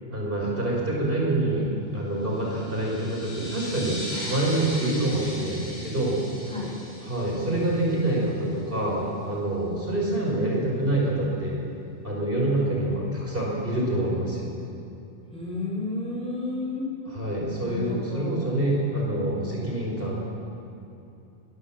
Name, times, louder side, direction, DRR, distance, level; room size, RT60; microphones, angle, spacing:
voice 1, 0.1-4.0 4.3-6.2 7.0-11.6 12.0-14.5 17.1-20.2, right 1 dB, 45° right, -3 dB, 5.4 m, -26 dB
sound 1, 2.3-8.5, left 1 dB, 35° left, 7.9 m, -39 dB
voice 2, 15.3-16.9 17.6-18.5, left 2 dB, 5° left, -4 dB, 5.7 m, -32 dB
23.0 x 19.0 x 7.4 m, 2.7 s
omnidirectional pair, 1.3 m